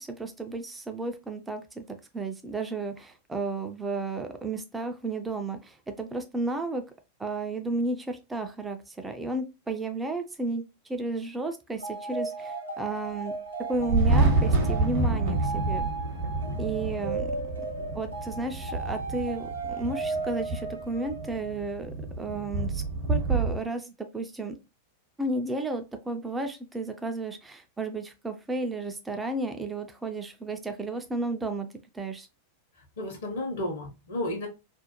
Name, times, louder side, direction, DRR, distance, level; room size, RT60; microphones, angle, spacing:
voice 1, 0.0-1.9 2.1-6.8 7.2-10.6 10.9-13.4 13.7-15.9 16.6-17.3 17.9-22.8 23.1-24.6 25.2-31.7 31.9-32.3, right 2 dB, 10° right, 6 dB, 0.4 m, -33 dB
sound 1, 11.8-21.6, right 3 dB, 80° right, 0.7 m, -36 dB
Thunder, 13.7-23.6, right 3 dB, 50° right, 0.8 m, -28 dB
voice 2, 32.8-34.5, left 1 dB, 60° left, 2 dB, 0.9 m, -33 dB
2.5 x 2.1 x 2.8 m, 0.27 s
figure-of-eight pair, 90°, 0 cm